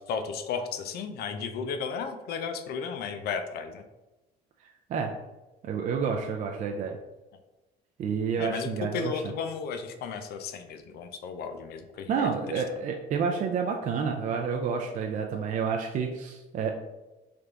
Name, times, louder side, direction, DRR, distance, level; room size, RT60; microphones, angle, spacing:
voice 1, 0.1-3.8 8.4-12.3, left 6 dB, 70° left, 7 dB, 0.5 m, -34 dB
voice 2, 5.6-7.0 8.0-9.2 12.1-16.7, right 6 dB, 50° right, 2 dB, 0.4 m, -29 dB
3.4 x 2.5 x 4.5 m, 1.1 s
cardioid pair, 110°, 17 cm